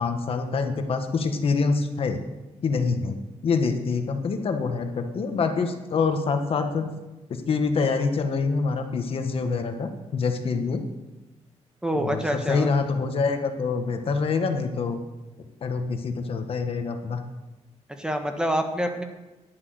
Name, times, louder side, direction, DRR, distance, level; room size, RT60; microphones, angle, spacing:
voice 1, 0.0-2.2 2.6-3.2 3.4-6.9 7.3-10.8 11.9-15.0 15.6-17.2, left 4 dB, 55° left, 6 dB, 1.5 m, -26 dB
voice 2, 11.8-12.7 18.0-19.0, right 1 dB, 5° right, 5 dB, 1.3 m, -26 dB
11.0 x 11.0 x 7.8 m, 1.1 s
cardioid pair, 130°, 12 cm